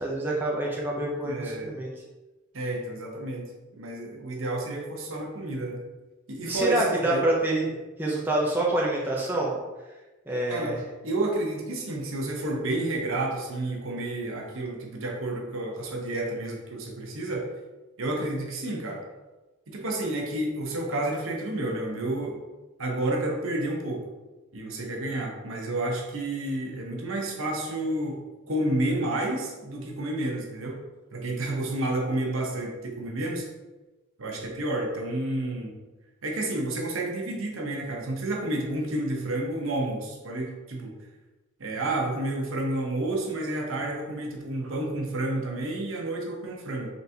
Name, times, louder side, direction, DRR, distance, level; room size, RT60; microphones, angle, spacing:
voice 1, 0.0-1.9 6.5-7.7 8.0-9.6 10.3-10.8, right 1 dB, 10° right, -4 dB, 0.5 m, -26 dB
voice 2, 1.3-1.7 2.5-5.8 6.3-7.3 10.5-17.5 18.0-19.0 19.7-22.4 22.8-24.0 24.5-28.2 28.5-30.8 31.1-33.5 34.2-35.7 36.2-40.9 41.6-46.9, right 1 dB, 70° right, 0 dB, 0.8 m, -30 dB
4.1 x 3.3 x 2.7 m, 1.2 s
head